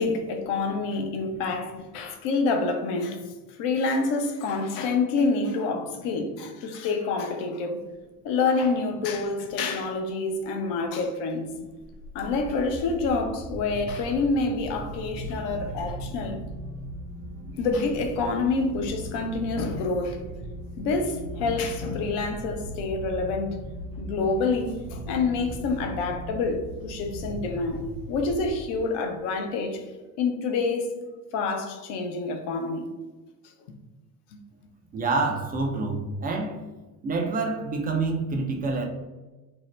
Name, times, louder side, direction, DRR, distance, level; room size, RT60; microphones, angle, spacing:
voice 1, 0.0-3.2 3.6-7.8 8.2-11.5 12.1-16.4 17.6-20.2 20.8-23.6 24.0-29.8 30.2-31.0 31.3-32.9, left 3 dB, 60° left, 0.6 m, -27 dB
sound 1, 11.7-29.0, right 1 dB, 60° right, 0.7 m, -38 dB
voice 2, 34.9-36.6 37.0-38.8, right 3 dB, 20° right, 0.3 m, -27 dB
2.7 x 2.1 x 3.1 m
hypercardioid pair, 75°, 48 cm